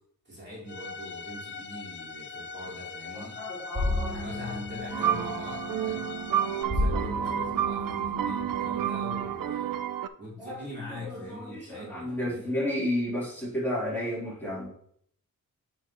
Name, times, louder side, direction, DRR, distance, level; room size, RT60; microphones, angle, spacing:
voice 1, 0.2-3.3 4.0-6.1 6.6-9.7 10.2-12.5, left 1 dB, 30° right, -6 dB, 3.1 m, -43 dB
Bowed string instrument, 0.7-6.6, left 5 dB, 35° left, 0.5 m, -41 dB
voice 2, 3.1-4.2 9.1-9.2 10.4-10.6 11.0-14.7, left 1 dB, 5° left, -8 dB, 3.4 m, -32 dB
sound 1, 3.7-9.4, left 1 dB, 15° right, 2.3 m, -34 dB
sound 2, 4.9-10.1, right 10 dB, 75° right, 0.5 m, -30 dB
9.8 x 5.2 x 3.0 m, 0.64 s
wide cardioid pair, 145°, 34 cm